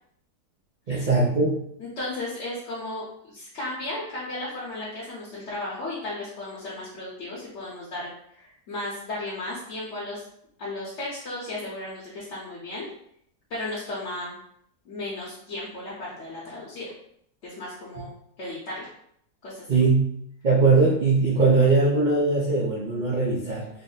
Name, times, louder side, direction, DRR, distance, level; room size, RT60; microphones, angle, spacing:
voice 1, 0.9-1.6 19.7-20.1 20.4-23.7, right 3 dB, 55° right, -5 dB, 0.5 m, -20 dB
voice 2, 1.8-10.2 10.6-12.9 13.5-14.4 14.8-16.9 17.4-18.1 18.4-18.9 19.4-19.6, left 2 dB, 55° left, -7 dB, 1.1 m, -35 dB
3.4 x 2.0 x 3.9 m, 0.70 s
omnidirectional pair, 1.7 m